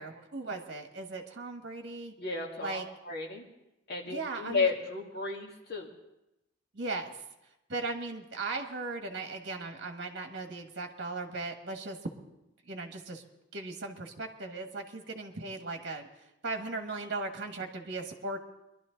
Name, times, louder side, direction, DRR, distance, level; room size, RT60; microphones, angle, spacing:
voice 1, 0.0-2.1 2.6-2.8 4.1-4.7 6.7-7.2 7.7-12.1 12.6-13.2 13.5-16.1 16.4-18.4, right 3 dB, 55° right, 4 dB, 1.4 m, -37 dB
voice 2, 2.2-3.4 3.9-5.9, left 4 dB, 55° left, -2 dB, 2.2 m, -33 dB
22.5 x 11.5 x 3.9 m, 0.90 s
head